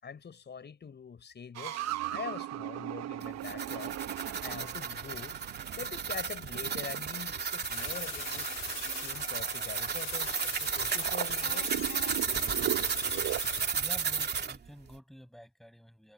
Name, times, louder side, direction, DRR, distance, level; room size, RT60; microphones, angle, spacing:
voice 1, 0.0-4.0 4.4-5.4 5.8-8.5 8.9-11.7, left 6 dB, 35° left, 5.9 m, -44 dB
sound 1, 1.6-8.0 8.6-10.0 10.9-13.4, right 14 dB, 60° right, 1.1 m, -39 dB
sound 2, 3.2-14.6, right 6 dB, 35° right, 2.7 m, -33 dB
sound 3, 7.5-13.7, left 13 dB, 60° left, 2.4 m, -43 dB
voice 2, 13.7-16.1, equal, ahead, 7.5 m, -50 dB
supercardioid pair, 90°, 30 cm